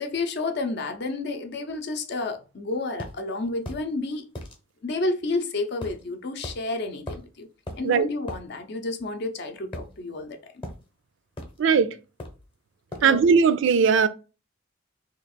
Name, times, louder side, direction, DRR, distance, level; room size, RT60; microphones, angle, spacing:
voice 1, 0.0-4.3 4.8-7.5 7.8-10.5 13.0-13.2, left 2 dB, 55° left, 0.6 m, -30 dB
sound 1, 3.0-3.2 3.7-3.9 4.4-4.6 5.8-6.0 6.4-6.6 7.1-7.3 7.7-7.8 8.3-8.4 9.7-10.3 10.6-10.8 11.4-11.6 12.2-12.5 12.9-13.1, left 1 dB, 25° left, 0.8 m, -37 dB
voice 2, 11.6-11.9 13.0-14.1, right 6 dB, 65° right, 0.4 m, -19 dB
2.9 x 2.4 x 4.2 m
head